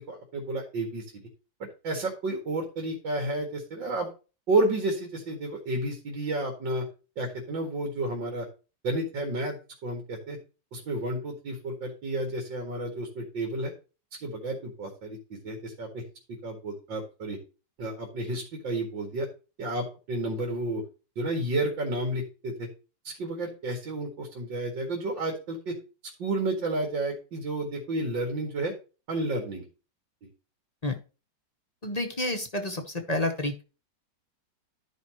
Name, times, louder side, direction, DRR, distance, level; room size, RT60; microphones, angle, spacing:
voice 1, 0.1-1.0 1.8-4.1 4.5-6.8 7.2-8.5 8.8-10.4 10.7-13.7 14.2-16.0 16.3-17.4 17.8-19.3 19.6-20.8 21.2-22.7 23.0-25.8 26.2-28.7 29.1-29.6 30.2-30.3, right 2 dB, 90° right, 2 dB, 2.7 m, -31 dB
voice 2, 31.8-33.6, left 1 dB, 30° left, 5 dB, 0.8 m, -29 dB
13.5 x 5.4 x 3.0 m, 0.32 s
omnidirectional pair, 2.0 m